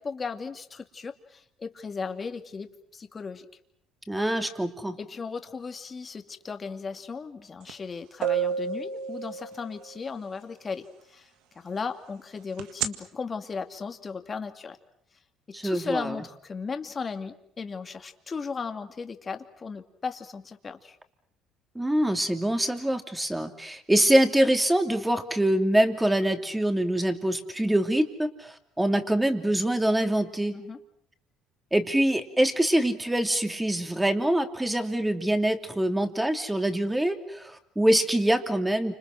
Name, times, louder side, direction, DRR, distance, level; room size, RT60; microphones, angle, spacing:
voice 1, 0.0-3.5 5.0-14.8 15.5-21.0 30.5-30.8, left 5 dB, 30° left, 6 dB, 2.4 m, -36 dB
voice 2, 4.1-5.0 15.5-16.2 21.7-30.6 31.7-38.9, right 1 dB, 10° right, 6 dB, 2.8 m, -24 dB
sound 1, 7.7-7.8 8.2-10.0 12.6-12.9, right 8 dB, 80° right, 1.8 m, -29 dB
29.0 x 26.5 x 6.5 m, 0.69 s
supercardioid pair, 90°, 0 cm